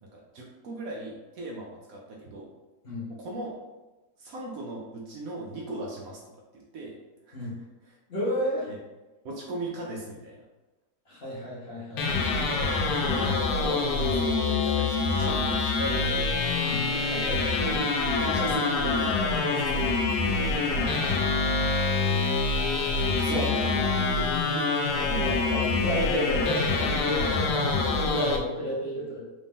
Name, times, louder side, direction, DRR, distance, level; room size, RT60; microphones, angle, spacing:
voice 1, 0.0-2.5 3.1-3.6 4.2-6.2 6.5-7.0 7.3-7.5 7.8-8.0 8.7-8.8 9.2-10.5 12.0-12.1 13.1-20.2 21.1-21.6 22.3-22.5 22.9-24.0 24.6-24.7 25.0-25.2, right 1 dB, 65° right, -1 dB, 1.0 m, -38 dB
voice 2, 8.1-8.7 11.1-12.1 16.6-16.9 20.6-21.7 23.3-23.9 25.2-29.2, left 1 dB, 45° left, -7 dB, 1.1 m, -32 dB
sound 1, 12.0-28.4, left 3 dB, 85° left, 1.2 m, -26 dB
4.0 x 2.6 x 3.6 m, 1.1 s
omnidirectional pair, 1.8 m